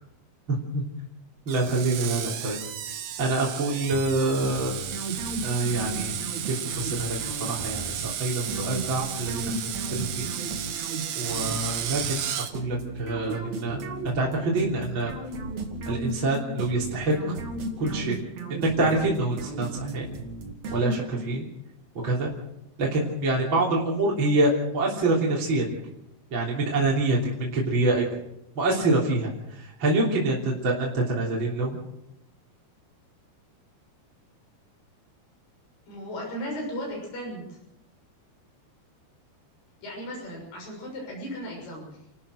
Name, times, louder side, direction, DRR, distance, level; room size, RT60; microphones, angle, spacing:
voice 1, 1.5-2.6 3.2-4.7 5.4-6.1 6.5-9.6 9.9-10.3 11.2-12.3 12.5-13.8 14.2-15.1 15.9-17.4 17.8-18.2 18.5-20.1 20.7-21.4 22.0-22.3 22.8-25.6 26.3-28.0 28.6-29.3 29.6-31.8, right 2 dB, 30° right, -4 dB, 3.6 m, -26 dB
Screech, 1.5-12.5, right 10 dB, 65° right, 2.0 m, -33 dB
sound 1, 3.9-21.4, right 2 dB, 50° right, 3.3 m, -35 dB
voice 2, 35.9-37.4 39.8-41.8, equal, 60° left, -1 dB, 8.1 m, -35 dB
29.0 x 13.5 x 6.4 m, 0.85 s
omnidirectional pair, 4.5 m